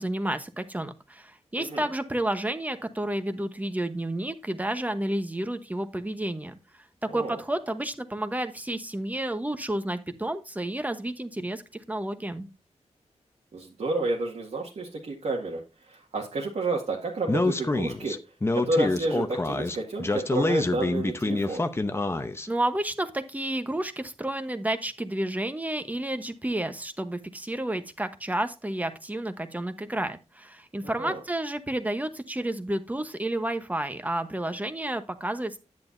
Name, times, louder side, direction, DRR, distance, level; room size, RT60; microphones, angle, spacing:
voice 1, 0.0-6.6 7.1-11.6 11.9-12.5 22.5-35.6, right 1 dB, 15° right, 9 dB, 1.0 m, -31 dB
voice 2, 1.6-1.9 7.1-7.4 13.5-18.1 18.5-21.7 30.8-31.2, right 2 dB, 75° right, -2 dB, 1.9 m, -30 dB
Speech, 17.3-22.5, left 2 dB, 20° left, 0.8 m, -27 dB
10.5 x 9.0 x 2.6 m, 0.28 s
wide cardioid pair, 125°, 12 cm